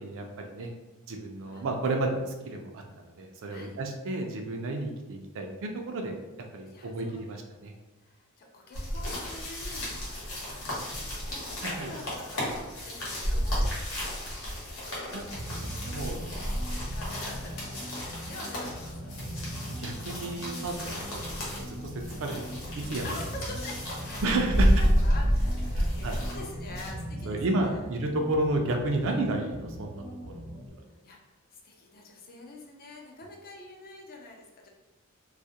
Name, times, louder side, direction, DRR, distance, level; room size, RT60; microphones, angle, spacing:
voice 1, 0.0-0.7 1.1-2.8 3.2-6.1 6.5-7.7 11.6-11.9 15.1-15.3 15.5-16.3 19.8-21.8 22.2-23.1 24.2-24.7 25.8-26.2 27.2-30.4, right 2 dB, 60° right, 3 dB, 0.4 m, -32 dB
voice 2, 6.7-7.3 8.0-14.3 14.8-16.1 16.4-18.0 18.3-19.2 23.0-24.2 24.6-27.9 29.1-29.2 30.9-34.7, left 2 dB, 40° left, 0 dB, 0.4 m, -46 dB
sound 1, 8.7-26.9, equal, 70° left, 0.9 m, -31 dB
sound 2, 15.3-30.7, equal, 85° right, 0.7 m, -40 dB
2.3 x 2.1 x 2.7 m, 1.1 s
head